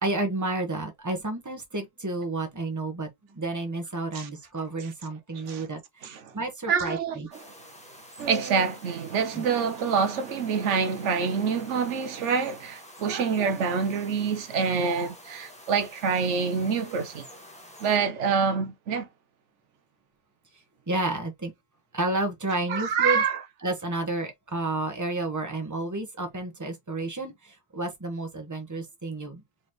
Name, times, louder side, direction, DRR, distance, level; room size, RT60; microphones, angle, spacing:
voice 1, 0.0-7.3 9.3-9.4 20.9-21.5 21.9-23.2 23.6-29.4, right 2 dB, 15° right, 1.1 m, -31 dB
voice 2, 6.7-7.2 7.4-7.5 8.2-17.3 17.8-19.1 22.7-23.4, right 6 dB, 85° right, 1.1 m, -26 dB
sound 1, 7.3-18.0, equal, 5° left, 1.4 m, -48 dB
4.3 x 4.0 x 3.0 m
omnidirectional pair, 1.2 m